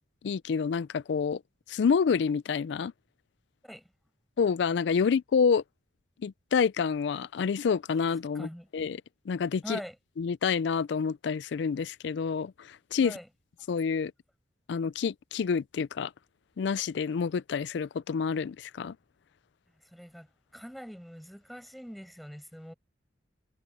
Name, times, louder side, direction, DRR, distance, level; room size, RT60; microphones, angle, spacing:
voice 1, 0.2-1.4 1.7-2.9 4.4-5.6 6.2-8.5 8.7-9.0 9.3-9.8 10.2-13.1 13.7-14.1 14.7-16.1 16.6-19.0, left 6 dB, 65° left, 0.3 m, -28 dB
voice 2, 8.3-8.7 9.6-10.0 13.0-13.3 19.8-22.7, equal, ahead, 5.9 m, -43 dB
head